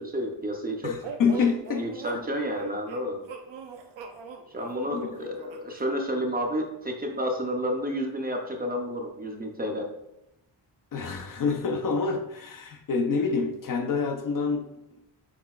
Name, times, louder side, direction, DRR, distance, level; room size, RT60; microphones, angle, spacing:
voice 1, 0.0-1.0 1.8-3.2 4.5-9.9, equal, 20° right, 0.5 m, -30 dB
voice 2, 0.8-1.9 2.1-2.2 4.9-5.1 10.9-14.7, left 5 dB, 50° left, 0.5 m, -27 dB
sound 1, 1.0-5.8, right 5 dB, 80° right, 0.7 m, -42 dB
6.0 x 3.8 x 2.3 m
wide cardioid pair, 140°, 44 cm